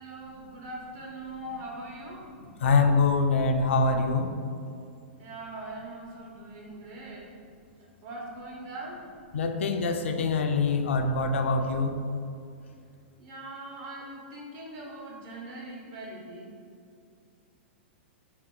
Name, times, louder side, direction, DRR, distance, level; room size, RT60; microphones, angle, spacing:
voice 1, 0.0-2.3 5.2-7.4 8.0-9.1 13.2-16.5, right 2 dB, 40° right, -3 dB, 1.0 m, -41 dB
voice 2, 2.6-4.3 9.3-12.0, left 4 dB, 85° left, 6 dB, 0.4 m, -24 dB
4.2 x 2.8 x 3.7 m, 2.3 s
hypercardioid pair, 135°, 6 cm